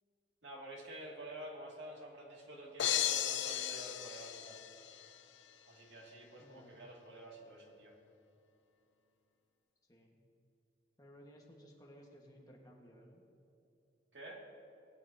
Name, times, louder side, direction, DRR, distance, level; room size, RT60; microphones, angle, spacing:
voice 1, 0.4-4.6 5.7-8.0 14.1-14.5, right 1 dB, 80° right, -2 dB, 2.3 m, -49 dB
sound 1, 2.8-5.1, left 11 dB, 85° left, 0.6 m, -35 dB
voice 2, 6.4-6.7 9.9-10.2 11.0-13.2, equal, 20° left, -1 dB, 1.5 m, -58 dB
20.0 x 9.7 x 2.8 m, 2.8 s
head